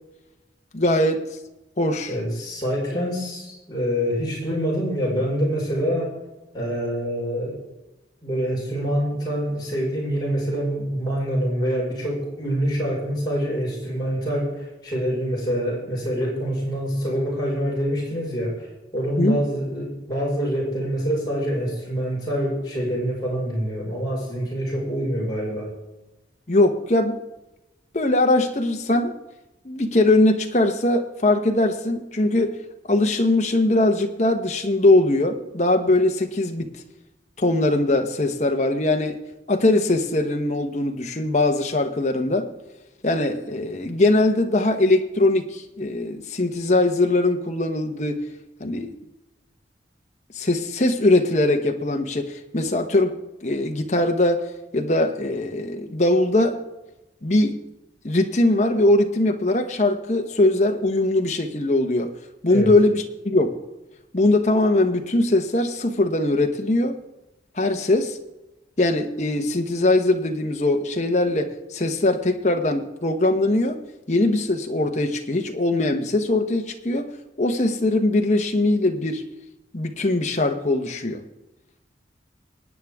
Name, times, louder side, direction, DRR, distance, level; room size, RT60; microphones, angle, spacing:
voice 1, 0.7-1.3 1.8-2.1 19.2-19.4 26.5-27.2 27.9-29.1 29.6-32.6 32.9-36.7 37.4-39.2 39.5-42.5 43.0-48.3 48.6-48.9 50.3-54.5 54.7-56.6 57.2-57.6 58.0-62.1 62.4-63.6 64.1-67.0 67.6-68.2 68.8-73.8 74.1-77.1 77.4-79.2 79.7-81.2, left 2 dB, 40° left, 4 dB, 1.1 m, -21 dB
voice 2, 2.1-6.1 6.5-7.6 8.2-18.7 18.9-25.7 62.5-62.7, equal, 25° left, -5 dB, 5.1 m, -26 dB
24.0 x 9.3 x 3.6 m, 1.0 s
head